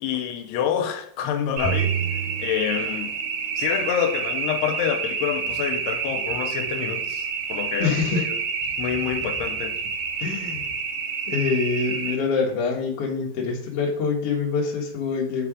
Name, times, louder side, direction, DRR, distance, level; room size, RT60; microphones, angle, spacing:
voice 1, 0.0-2.0 2.4-3.1 3.6-8.3 8.8-9.8, left 9 dB, 85° left, 2.7 m, -27 dB
sound 1, 1.6-3.4, right 9 dB, 55° right, 1.7 m, -29 dB
sound 2, 1.6-12.2, right 6 dB, 75° right, 2.2 m, -29 dB
voice 2, 7.8-8.3 10.2-10.6 11.3-15.5, left 5 dB, 60° left, 1.7 m, -25 dB
9.0 x 3.4 x 4.9 m
omnidirectional pair, 4.7 m